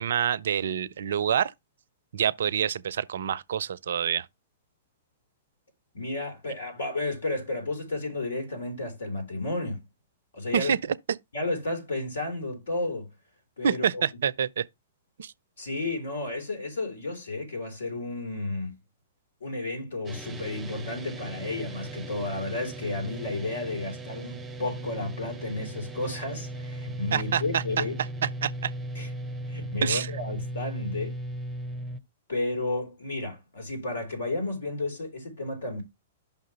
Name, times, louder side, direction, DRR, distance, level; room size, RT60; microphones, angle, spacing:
voice 1, 0.0-1.5 2.1-4.3 10.5-10.8 13.6-14.6 15.2-15.3 27.1-27.8 28.4-28.7 29.8-30.1, right 8 dB, 60° right, 0.4 m, -27 dB
voice 2, 5.9-9.8 10.3-10.7 11.3-13.1 13.6-14.0 15.6-18.7 19.4-28.0 29.0-29.1 29.5-31.2 32.3-35.8, left 2 dB, 65° left, 3.6 m, -32 dB
sound 1, 20.1-32.0, right 1 dB, 10° right, 0.7 m, -37 dB
5.8 x 3.7 x 5.6 m
figure-of-eight pair, 105°, 0 cm